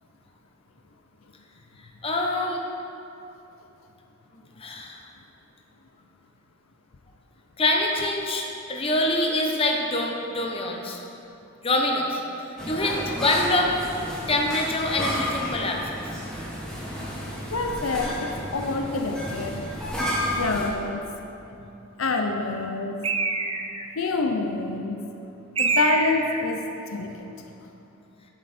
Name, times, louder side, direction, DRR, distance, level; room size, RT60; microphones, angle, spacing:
voice 1, 2.0-2.6 4.3-5.0 7.6-11.0 11.6-12.2 12.5-13.7 14.3-15.8, left 1 dB, 25° left, 0 dB, 0.8 m, -25 dB
sound 1, 12.6-20.7, equal, 5° left, 1.7 m, -32 dB
voice 2, 17.5-19.7 20.4-21.1 22.0-23.0 24.0-25.1 25.6-26.7 26.9-27.3, left 3 dB, 70° left, 4 dB, 0.7 m, -27 dB
Bird, 23.0-23.9 25.6-26.5, right 4 dB, 25° right, 0.5 m, -25 dB
10.0 x 7.6 x 4.3 m, 2.8 s
head